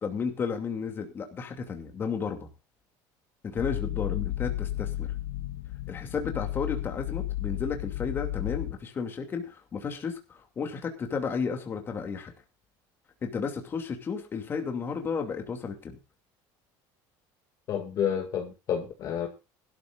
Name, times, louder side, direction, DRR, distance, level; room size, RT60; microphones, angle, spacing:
voice 1, 0.0-2.5 3.4-5.1 5.9-12.3 13.2-16.0, left 5 dB, 25° left, 4 dB, 2.6 m, -33 dB
sound 1, 3.6-8.8, left 15 dB, 90° left, 0.6 m, -33 dB
voice 2, 17.7-19.3, left 8 dB, 40° left, 3 dB, 2.2 m, -30 dB
21.0 x 13.0 x 2.5 m, 0.29 s
cardioid pair, 165°, 9 cm